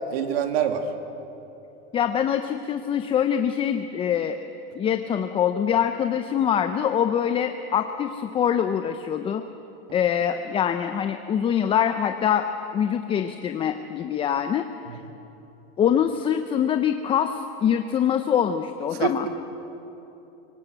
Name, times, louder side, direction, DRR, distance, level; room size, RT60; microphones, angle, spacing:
voice 1, 0.1-0.8 14.9-15.0 19.0-19.3, right 9 dB, 70° right, 6 dB, 2.3 m, -25 dB
voice 2, 1.9-4.4 4.7-9.4 9.9-14.7 15.8-19.3, left 9 dB, 15° left, 8 dB, 0.5 m, -24 dB
25.0 x 18.0 x 8.0 m, 3.0 s
supercardioid pair, 145°, 33 cm